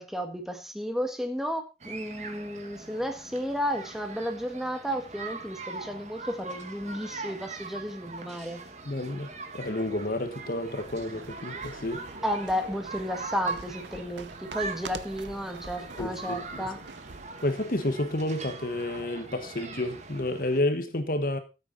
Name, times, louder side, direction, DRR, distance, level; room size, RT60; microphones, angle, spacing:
voice 1, 0.0-8.6 12.2-16.8, equal, ahead, 1.6 m, -33 dB
sound 1, 1.8-20.6, right 3 dB, 40° right, 1.8 m, -41 dB
voice 2, 8.8-12.1 16.0-16.7 17.4-21.4, left 1 dB, 50° left, 1.4 m, -30 dB
sound 2, 10.4-17.6, right 4 dB, 90° right, 0.9 m, -46 dB
14.0 x 8.0 x 4.0 m
head